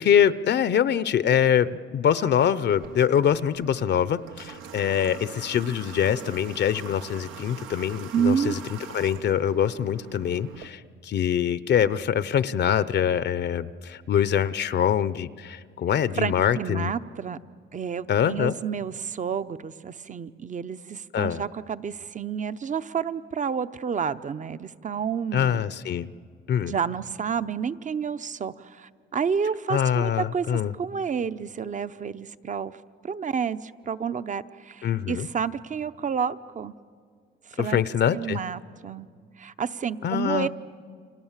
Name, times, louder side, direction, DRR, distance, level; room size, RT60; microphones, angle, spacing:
voice 1, 0.0-8.6 8.9-16.9 18.1-18.5 21.1-21.4 25.3-26.1 26.5-26.7 29.7-30.7 34.8-35.3 37.6-38.4 40.0-40.5, left 9 dB, 60° left, 16 dB, 0.7 m, -24 dB
Water / Water tap faucet, 2.7-10.7, right 8 dB, 85° right, 1.4 m, -43 dB
voice 2, 8.1-8.5 16.2-17.4 17.7-25.6 26.6-32.8 33.0-36.7 37.5-37.8 38.1-39.1 39.4-40.5, right 7 dB, 40° right, 14 dB, 0.8 m, -30 dB
29.5 x 26.5 x 7.4 m, 2.1 s
cardioid pair, 90°, 20 cm